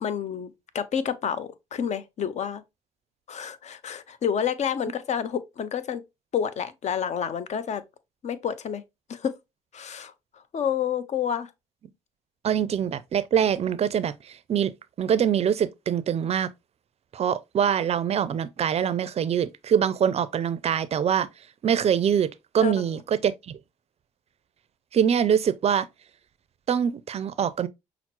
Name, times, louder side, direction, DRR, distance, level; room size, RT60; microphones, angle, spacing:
voice 1, 0.0-2.6 3.3-6.0 6.3-7.8 8.2-8.8 9.1-9.3 9.7-10.1 10.5-11.5 22.6-22.7, left 8 dB, 50° left, 0.6 m, -29 dB
voice 2, 12.4-14.7 15.0-16.5 17.1-21.3 21.6-22.3 22.5-23.6 24.9-25.9 26.7-27.7, right 8 dB, 45° right, 0.4 m, -24 dB
5.7 x 2.0 x 2.8 m
hypercardioid pair, 55°, 15 cm